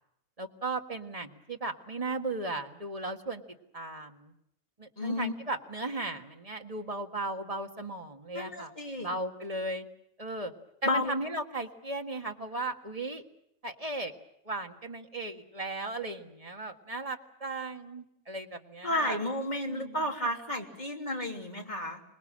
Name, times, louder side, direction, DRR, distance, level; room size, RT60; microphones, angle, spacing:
voice 1, 0.4-3.4 3.7-4.3 4.8-8.7 9.0-9.9 10.2-10.5 10.8-13.2 13.6-14.1 14.5-19.2 19.7-20.0, right 2 dB, 25° right, 4 dB, 1.7 m, -36 dB
voice 2, 5.0-5.3 8.3-9.1 10.8-11.1 18.8-22.0, left 1 dB, 30° left, 1 dB, 3.3 m, -32 dB
26.0 x 20.5 x 7.6 m, 0.77 s
omnidirectional pair, 1.5 m